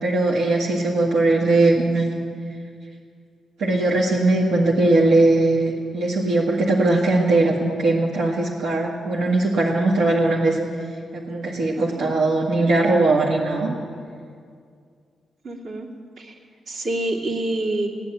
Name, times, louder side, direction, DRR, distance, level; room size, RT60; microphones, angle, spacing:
voice 1, 0.0-2.2 3.6-10.7 11.1-13.8, right 2 dB, 85° right, -3 dB, 1.7 m, -20 dB
voice 2, 11.8-12.1 15.4-15.9 16.2-16.3 16.7-17.9, right 1 dB, 65° right, -2 dB, 2.4 m, -27 dB
16.5 x 9.8 x 9.0 m, 2.2 s
cardioid pair, 120°, 0 cm